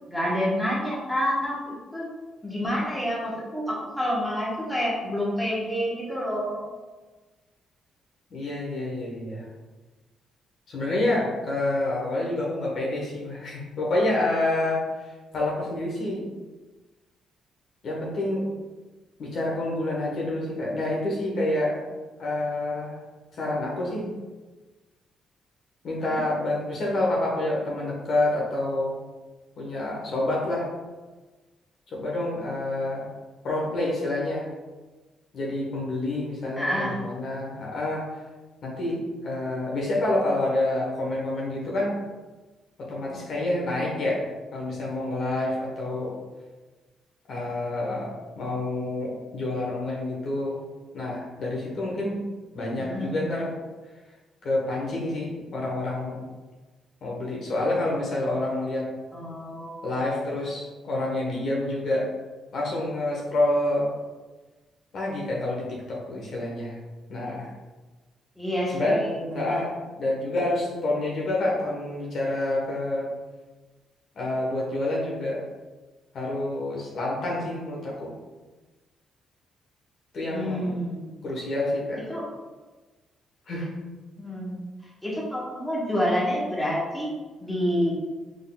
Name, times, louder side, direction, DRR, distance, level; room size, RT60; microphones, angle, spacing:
voice 1, 0.1-2.1 2.4-6.6 26.1-26.2 36.6-37.0 52.8-53.2 59.1-59.8 68.4-69.6 80.3-81.1 82.1-82.2 84.2-84.7 85.0-87.1 87.4-87.9, equal, 5° left, -5 dB, 1.1 m, -28 dB
voice 2, 8.3-9.5 10.7-16.3 17.8-18.5 19.2-21.8 22.2-23.0 23.3-24.1 25.8-28.9 29.6-30.7 31.9-33.1 33.4-34.5 35.3-38.2 38.6-42.0 42.8-46.1 47.3-50.6 50.9-52.2 52.5-53.5 54.4-56.2 57.0-58.9 59.8-62.1 62.5-63.9 64.9-66.8 67.1-67.5 68.7-69.1 69.3-73.1 74.1-75.5 76.1-78.1 80.1-80.8 81.2-82.1 83.5-83.7, left 2 dB, 60° left, -3 dB, 1.1 m, -28 dB
3.8 x 3.7 x 2.3 m, 1.2 s
cardioid pair, 90°, 0 cm